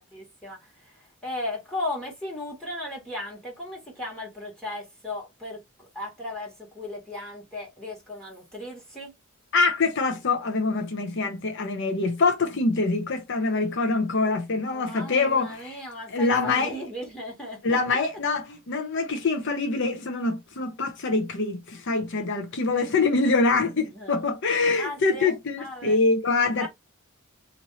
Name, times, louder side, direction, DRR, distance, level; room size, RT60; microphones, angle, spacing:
voice 1, 0.0-9.1 14.7-17.6 23.9-24.2 24.8-26.0 26.6-26.7, left 1 dB, 5° left, 1.5 m, -36 dB
voice 2, 9.5-15.8 16.1-16.8 17.6-26.7, left 3 dB, 60° left, 0.7 m, -24 dB
3.1 x 2.6 x 4.0 m
head